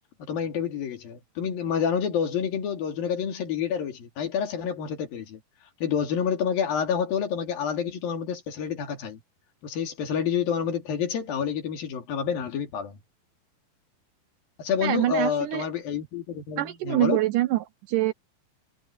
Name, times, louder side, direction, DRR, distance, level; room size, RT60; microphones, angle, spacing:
voice 1, 0.2-5.4 5.8-9.2 9.6-13.0 14.6-17.2, left 7 dB, 75° left, 4.4 m, -28 dB
voice 2, 14.8-15.7 16.6-18.1, right 16 dB, 75° right, 2.0 m, -25 dB
omnidirectional pair, 4.2 m